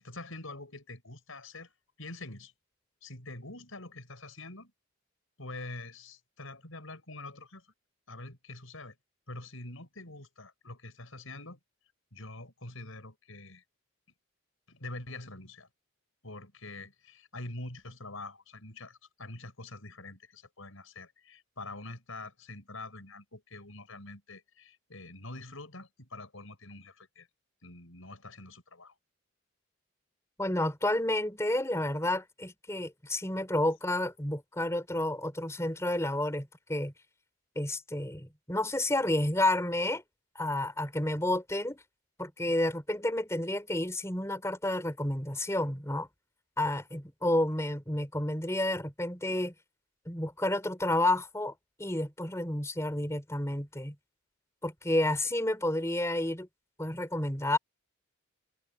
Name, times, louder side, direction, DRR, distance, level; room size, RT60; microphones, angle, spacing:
voice 1, 0.0-2.5 3.0-4.7 5.4-7.7 8.1-9.0 9.3-11.6 12.1-13.6 14.7-15.7 16.2-27.3 27.6-29.0, left 2 dB, 75° left, 5.5 m, -45 dB
voice 2, 30.4-36.9 37.6-40.0 40.3-41.8 42.2-46.1 46.6-49.5 50.1-51.5 51.8-53.9 54.6-56.5 56.8-57.6, left 1 dB, 15° left, 4.3 m, -30 dB
head